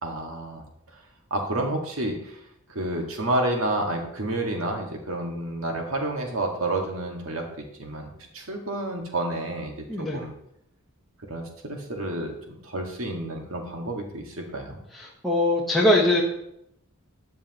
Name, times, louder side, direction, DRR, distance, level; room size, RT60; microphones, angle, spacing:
voice 1, 0.0-0.6 0.9-1.0 1.3-2.4 2.7-7.5 7.8-10.3 11.3-14.8, right 1 dB, 65° right, 1 dB, 1.8 m, -30 dB
voice 2, 9.9-10.2 14.9-16.2, left 1 dB, ahead, -5 dB, 1.0 m, -22 dB
13.0 x 8.6 x 3.0 m, 0.78 s
head